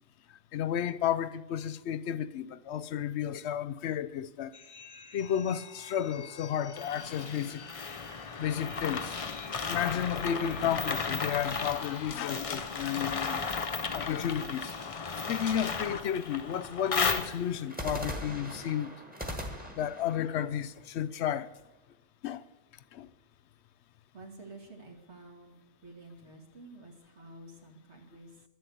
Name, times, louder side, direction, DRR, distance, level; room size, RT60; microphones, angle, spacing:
voice 1, 0.3-4.5 5.1-7.6 8.4-9.2 9.7-13.6 13.9-14.7 15.3-18.9 19.7-21.5 22.2-22.4 22.9-23.1, left 9 dB, 70° left, 0.8 m, -32 dB
sound 1, 4.5-12.2, left 6 dB, 90° left, 1.3 m, -49 dB
sound 2, 6.8-17.7, left 5 dB, 35° left, 0.7 m, -35 dB
sound 3, 17.7-21.7, equal, 10° right, 1.5 m, -42 dB
voice 2, 24.1-25.6 25.8-28.4, right 2 dB, 65° right, 2.4 m, -50 dB
12.5 x 7.8 x 8.1 m
omnidirectional pair, 1.2 m